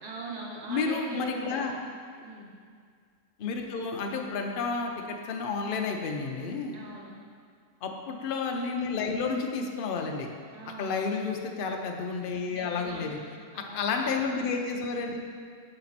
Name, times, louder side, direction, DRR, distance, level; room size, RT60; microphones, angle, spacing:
voice 1, 0.0-1.7 2.2-2.5 6.7-7.2 10.5-10.9 12.5-13.1 13.5-13.9, right 2 dB, 35° right, -2 dB, 0.8 m, -41 dB
voice 2, 0.7-1.7 3.4-6.8 7.8-10.3 10.8-13.2 13.5-15.2, left 4 dB, 70° left, 2 dB, 0.5 m, -31 dB
6.7 x 4.3 x 4.1 m, 2.1 s
omnidirectional pair, 1.6 m